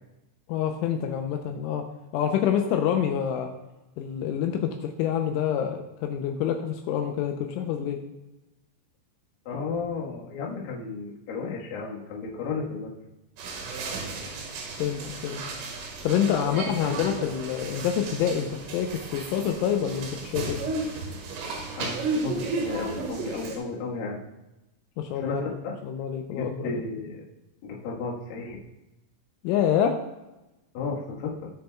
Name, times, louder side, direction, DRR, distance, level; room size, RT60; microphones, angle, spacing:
voice 1, 0.5-1.8 2.1-3.5 4.0-8.0 14.8-15.4 16.0-20.6 25.0-25.4 25.9-26.8 29.4-29.9, left 9 dB, 80° left, 4 dB, 3.1 m, -27 dB
voice 2, 9.5-12.9 16.8-17.0 21.8-24.2 25.1-25.8 26.3-27.2 27.6-28.6 30.7-31.5, left 4 dB, 60° left, -3 dB, 2.6 m, -33 dB
sound 1, 13.4-23.6, right 3 dB, 80° right, 4.2 m, -34 dB
19.5 x 6.6 x 2.3 m, 1.0 s
omnidirectional pair, 5.7 m